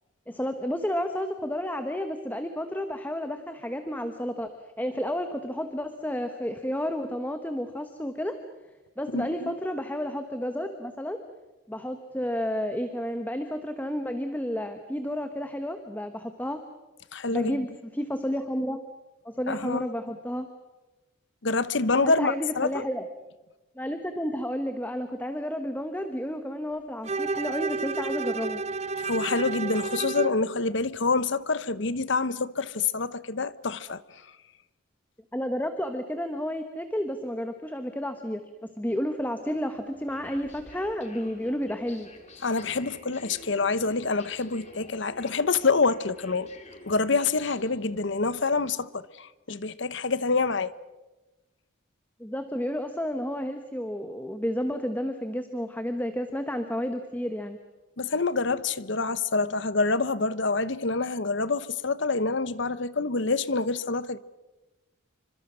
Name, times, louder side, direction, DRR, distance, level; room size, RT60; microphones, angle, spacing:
voice 1, 0.3-4.5 4.8-8.4 9.0-11.2 11.7-16.6 17.3-18.8 19.2-20.5 22.0-23.1 23.8-28.6 35.3-38.4 38.8-42.1 52.2-57.6, equal, 10° left, 1.1 m, -31 dB
voice 2, 9.1-9.5 17.1-17.6 19.5-19.9 21.4-22.8 29.0-34.0 42.4-46.5 46.9-50.7 58.0-64.2, left 3 dB, 60° left, 0.9 m, -27 dB
Bowed string instrument, 27.0-30.4, right 4 dB, 30° right, 0.9 m, -31 dB
sound 1, 39.8-48.4, left 2 dB, 35° left, 3.3 m, -49 dB
28.0 x 25.5 x 6.3 m
head